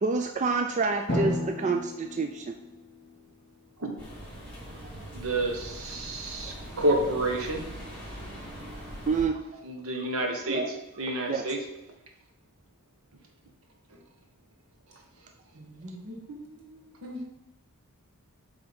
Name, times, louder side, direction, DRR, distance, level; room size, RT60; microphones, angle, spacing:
voice 1, 0.0-2.5 9.1-9.6 10.5-10.7 11.3-11.4, right 4 dB, 35° right, 5 dB, 0.4 m, -28 dB
Drum, 1.1-3.6, left 1 dB, 35° left, 2.4 m, -33 dB
sound 1, 4.0-9.2, equal, 5° left, 2.6 m, -41 dB
voice 2, 5.1-7.6 9.6-10.6 11.0-11.6, right 1 dB, 65° right, 2 dB, 1.1 m, -29 dB
voice 3, 15.5-17.2, equal, 90° right, -1 dB, 1.7 m, -42 dB
7.8 x 3.5 x 5.3 m, 0.96 s
head